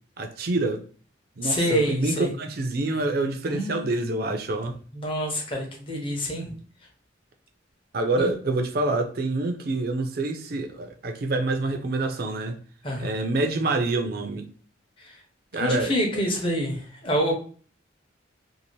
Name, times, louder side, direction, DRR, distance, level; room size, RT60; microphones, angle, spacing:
voice 1, 0.2-0.8 1.4-4.8 7.9-12.6 13.0-14.5 15.5-16.2, right 2 dB, 50° right, 0.4 m, -27 dB
voice 2, 1.4-2.3 3.5-4.3 4.9-6.5 8.2-8.3 12.8-13.1 15.0-15.1 15.6-17.3, equal, 25° left, 0.7 m, -27 dB
2.7 x 2.4 x 3.0 m
head